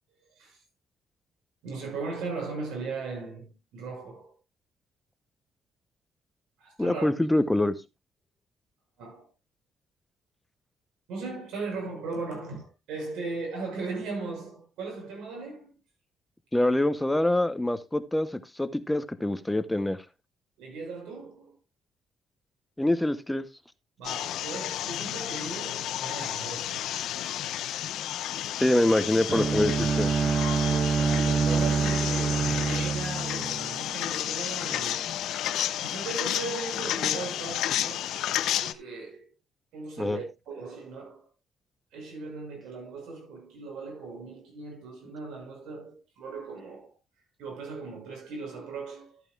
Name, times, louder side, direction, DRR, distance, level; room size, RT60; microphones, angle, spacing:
voice 1, 1.6-4.3 6.6-7.1 9.0-9.3 11.1-15.7 20.6-21.6 24.0-26.9 30.6-35.1 35.7-38.2 38.5-39.3 39.7-41.2 41.9-46.9 47.4-49.2, right 3 dB, 90° right, 6.4 m, -38 dB
voice 2, 6.8-7.7 16.5-20.0 22.8-23.5 28.6-30.1 40.0-40.2, left 1 dB, 10° left, 0.8 m, -25 dB
sound 1, 24.0-38.7, left 12 dB, 80° left, 0.6 m, -31 dB
Bowed string instrument, 29.3-34.2, right 5 dB, 40° right, 0.6 m, -26 dB
13.0 x 8.9 x 2.4 m
cardioid pair, 90°, 0 cm